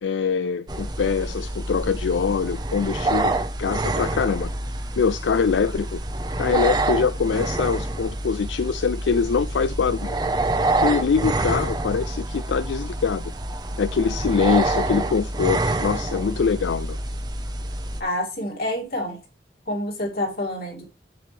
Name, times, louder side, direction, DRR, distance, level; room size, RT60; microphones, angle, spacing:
voice 1, 0.0-4.5 5.0-6.0 6.4-10.2 10.8-13.2 13.8-17.0, left 5 dB, 90° left, 0.4 m, -23 dB
sound 1, 0.7-18.0, right 2 dB, 25° right, 0.8 m, -27 dB
voice 2, 18.0-19.2 19.7-20.8, left 1 dB, 60° left, 2.8 m, -28 dB
7.6 x 7.5 x 3.4 m
head